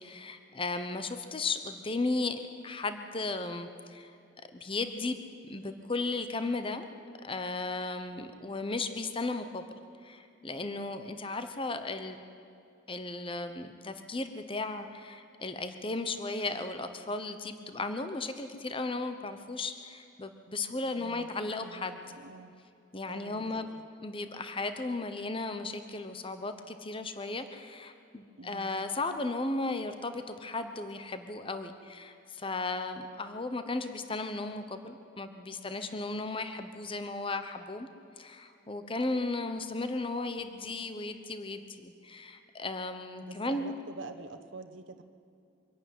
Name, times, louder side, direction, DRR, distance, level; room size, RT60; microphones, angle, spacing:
voice 1, 0.0-4.2 4.5-5.2 5.5-6.9 7.2-9.6 10.0-12.2 12.9-22.0 22.9-23.7 24.0-37.9 38.2-43.7, left 3 dB, 30° left, 9 dB, 0.9 m, -35 dB
voice 2, 20.9-22.5 23.1-23.8 28.4-28.7 43.3-45.0, right 3 dB, 80° right, 6 dB, 1.1 m, -47 dB
24.5 x 11.5 x 9.3 m, 2.6 s
head